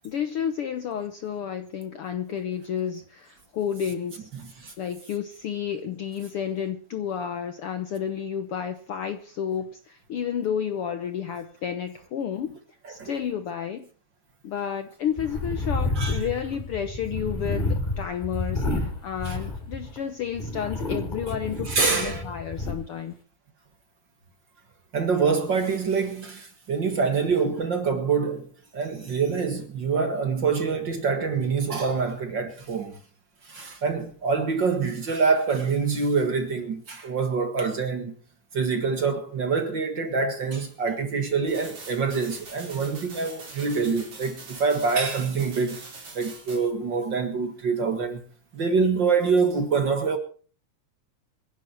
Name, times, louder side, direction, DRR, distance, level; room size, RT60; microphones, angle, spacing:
voice 1, 0.0-4.3 4.8-12.6 12.9-13.9 14.4-23.1, left 8 dB, 65° left, 1.4 m, -31 dB
sound 1, 15.2-20.0 20.3-22.7, left 2 dB, 15° left, 3.6 m, -30 dB
voice 2, 21.7-22.2 24.9-33.0 33.5-38.2 38.5-45.8 46.1-48.2 48.5-50.2, right 5 dB, 45° right, 2.0 m, -25 dB
sound 2, 41.5-46.6, right 3 dB, 70° right, 6.3 m, -43 dB
26.0 x 11.0 x 4.5 m
omnidirectional pair, 3.5 m